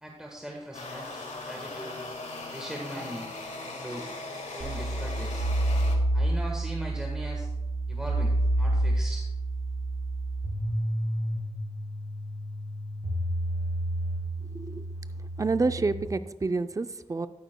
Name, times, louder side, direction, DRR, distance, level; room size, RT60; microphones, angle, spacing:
voice 1, 0.0-2.0 2.5-3.3 3.6-4.0 4.5-5.5 6.1-7.5 7.9-9.2, equal, 5° right, -1 dB, 1.3 m, -40 dB
sound 1, 0.7-6.0, left 2 dB, 90° left, 1.6 m, -39 dB
sound 2, 4.6-16.0, right 1 dB, 80° right, 2.7 m, -29 dB
voice 2, 15.4-17.3, right 3 dB, 30° right, 11 dB, 0.4 m, -28 dB
14.0 x 9.0 x 2.2 m, 0.97 s
wide cardioid pair, 95°, 12 cm